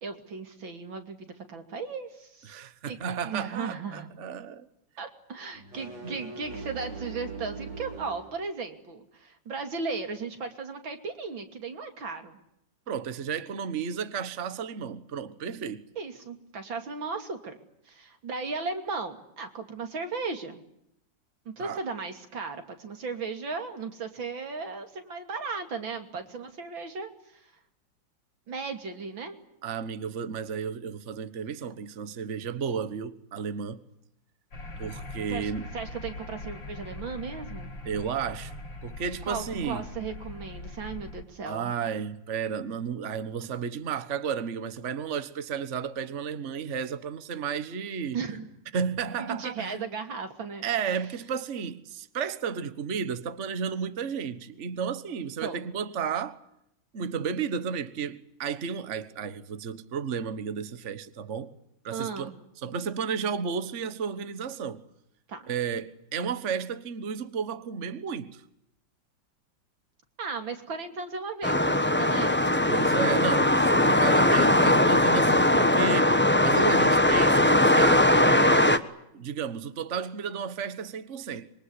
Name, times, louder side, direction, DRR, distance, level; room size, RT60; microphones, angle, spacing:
voice 1, 0.0-2.6 2.8-3.0 3.2-4.1 5.0-12.4 16.0-17.6 17.9-20.6 21.5-27.4 28.5-29.4 35.3-37.7 39.2-41.7 48.1-48.5 49.2-50.6 55.4-55.6 61.9-62.4 65.3-65.4 70.2-72.5, right 4 dB, 85° right, 3.5 m, -36 dB
voice 2, 2.5-4.7 6.0-6.1 12.9-15.9 21.6-21.8 29.6-33.8 34.8-35.6 37.8-38.6 38.8-39.9 41.4-48.2 48.7-49.9 50.6-56.4 56.9-61.5 61.8-62.3 62.6-64.8 65.5-68.4 72.7-78.9 79.1-81.5, right 6 dB, 40° right, 1.5 m, -33 dB
sound 1, 5.5-8.3, right 4 dB, 70° right, 7.4 m, -40 dB
sound 2, 34.5-41.2, left 2 dB, 85° left, 5.3 m, -41 dB
sound 3, 71.4-78.8, left 1 dB, 5° left, 1.0 m, -20 dB
26.0 x 23.5 x 9.7 m
omnidirectional pair, 2.1 m